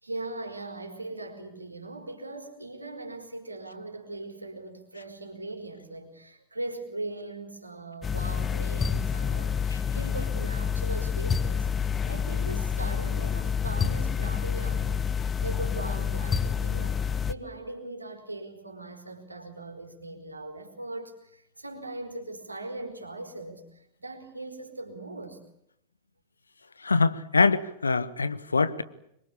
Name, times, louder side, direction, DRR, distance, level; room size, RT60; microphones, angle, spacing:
voice 1, 0.0-17.0 17.3-25.4, right 2 dB, 85° right, 5 dB, 4.6 m, -40 dB
sound 1, 8.0-17.3, left 7 dB, 20° left, 1.0 m, -28 dB
voice 2, 26.8-28.8, left 4 dB, 75° left, 15 dB, 1.4 m, -24 dB
26.0 x 23.0 x 8.6 m, 0.77 s
figure-of-eight pair, 90°, 0 cm